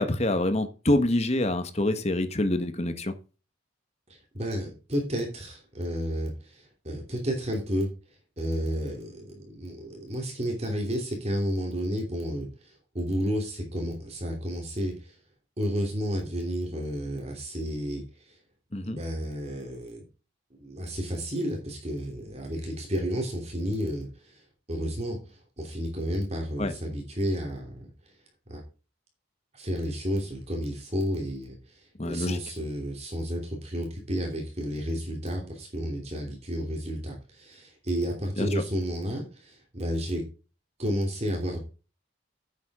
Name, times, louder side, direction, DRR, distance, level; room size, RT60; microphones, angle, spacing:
voice 1, 0.0-3.1 18.7-19.0 26.6-26.7 32.0-32.4 38.4-38.5, left 1 dB, 30° left, 9 dB, 1.2 m, -26 dB
voice 2, 4.1-7.9 8.4-15.2 15.6-18.3 18.8-20.0 20.6-24.4 24.7-27.9 28.5-28.6 29.5-40.2 40.8-41.6, equal, 30° right, 1 dB, 3.0 m, -31 dB
9.7 x 8.4 x 3.6 m, 0.33 s
head